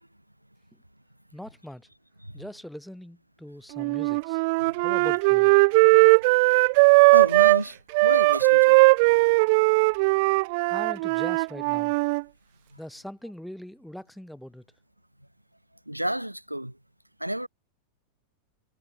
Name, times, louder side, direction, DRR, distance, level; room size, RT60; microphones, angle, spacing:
voice 1, 1.3-1.9 2.3-4.4 4.8-5.5 10.7-11.9 12.8-14.6, equal, ahead, 7.9 m, -41 dB
Wind instrument woodwind instrument, 3.8-7.6 7.9-12.2, right 28 dB, 45° right, 1.6 m, -19 dB
voice 2, 7.1-8.8 15.9-16.7 17.2-17.5, right 1 dB, 90° right, 6.8 m, -30 dB
figure-of-eight pair, 90°, 0 cm